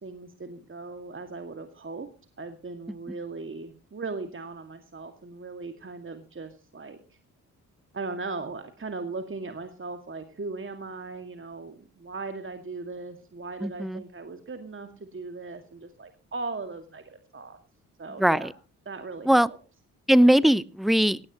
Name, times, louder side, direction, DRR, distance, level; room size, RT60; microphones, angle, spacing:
voice 1, 0.0-2.1 2.4-7.0 7.9-17.6 18.0-18.5 18.9-19.6, right 3 dB, 30° right, 7 dB, 2.2 m, -38 dB
voice 2, 13.6-14.0 18.2-18.5 19.3-19.5 20.1-21.2, right 1 dB, ahead, 22 dB, 0.7 m, -20 dB
17.5 x 17.0 x 3.0 m, 0.34 s
hypercardioid pair, 40°, 41 cm